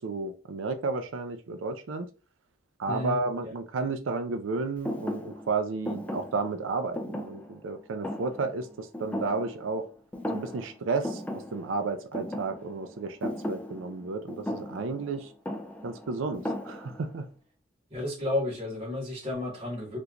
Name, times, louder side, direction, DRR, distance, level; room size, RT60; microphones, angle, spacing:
voice 1, 0.0-2.1 2.8-9.9 10.3-15.3 15.8-17.3, right 3 dB, 75° right, 8 dB, 0.4 m, -32 dB
voice 2, 2.9-3.5 17.9-20.0, left 2 dB, 30° right, -9 dB, 1.8 m, -32 dB
Thump thud, 4.8-9.9 10.1-10.8 11.0-17.2, left 1 dB, 5° left, 0.4 m, -37 dB
3.5 x 2.8 x 2.4 m, 0.35 s
head